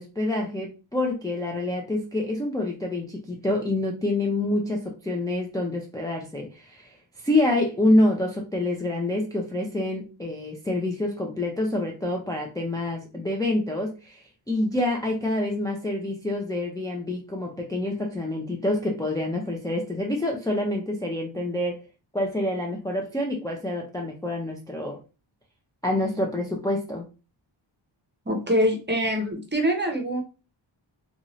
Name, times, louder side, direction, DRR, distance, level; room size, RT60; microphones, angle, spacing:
voice 1, 0.0-21.8 22.1-25.0 25.8-27.1, left 1 dB, 10° left, 0 dB, 0.4 m, -27 dB
voice 2, 28.3-30.2, equal, 20° right, 3 dB, 0.7 m, -24 dB
2.6 x 2.4 x 3.0 m, 0.32 s
wide cardioid pair, 95°, 47 cm